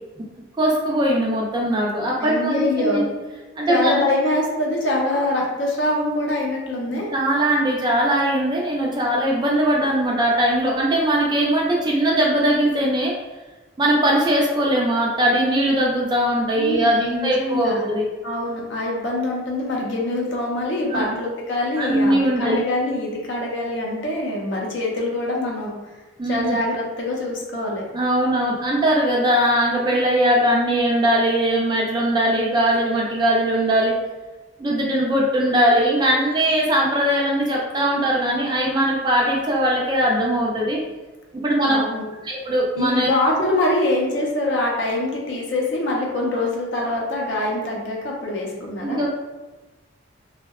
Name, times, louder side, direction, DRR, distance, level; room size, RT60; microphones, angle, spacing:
voice 1, 0.6-3.0 3.6-4.0 6.9-13.1 13.8-18.1 20.9-21.1 21.8-22.6 26.2-26.5 27.9-33.9 34.6-40.8 41.4-41.8 42.2-43.1 48.8-49.1, right 1 dB, 20° right, -3 dB, 0.3 m, -20 dB
voice 2, 2.2-3.0 3.6-7.1 16.6-17.9 18.2-25.7 26.2-27.8 41.7-42.1 42.8-49.0, left 2 dB, 60° left, -2 dB, 0.6 m, -24 dB
2.6 x 2.1 x 2.3 m, 1.2 s
head